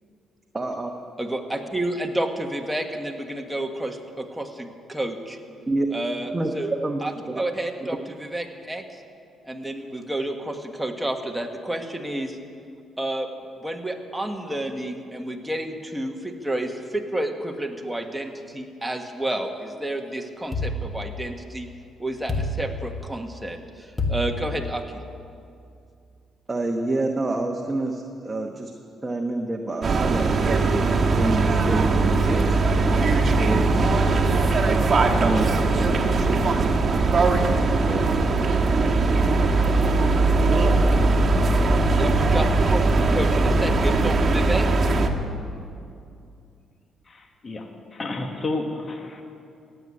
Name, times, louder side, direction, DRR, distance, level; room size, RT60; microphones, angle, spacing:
voice 1, 0.5-0.9 5.7-5.9 6.3-6.5 6.8-7.0 7.3-7.4 7.8-7.9 26.5-28.7 29.0-30.8 31.2-32.7 32.9-34.2 35.2-36.7 37.3-37.4 37.8-38.1 38.4-38.5, right 2 dB, 20° right, 2 dB, 1.1 m, -28 dB
voice 2, 1.2-5.4 5.9-8.8 9.4-12.4 13.0-13.3 13.6-21.7 22.0-25.0 41.9-44.7, right 1 dB, 5° right, 3 dB, 1.5 m, -30 dB
sound 1, 20.5-21.6 22.3-23.3 24.0-25.1, left 1 dB, 15° left, 1.5 m, -29 dB
sound 2, 29.8-45.1, right 3 dB, 40° right, 1.5 m, -20 dB
voice 3, 47.1-49.2, left 2 dB, 35° left, 4 dB, 1.3 m, -31 dB
15.5 x 7.8 x 9.8 m, 2.5 s
cardioid pair, 90°, 0 cm